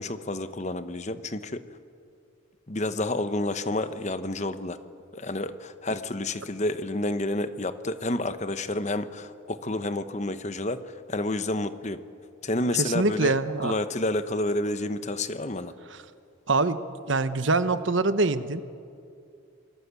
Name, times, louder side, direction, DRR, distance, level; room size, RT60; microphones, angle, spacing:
voice 1, 0.0-1.6 2.7-4.8 5.1-12.0 12.4-15.7, left 2 dB, 35° left, 11 dB, 1.1 m, -29 dB
voice 2, 12.8-13.7 16.5-16.8 17.1-18.6, right 3 dB, 65° right, 12 dB, 1.1 m, -24 dB
28.5 x 21.0 x 8.3 m, 2.4 s
head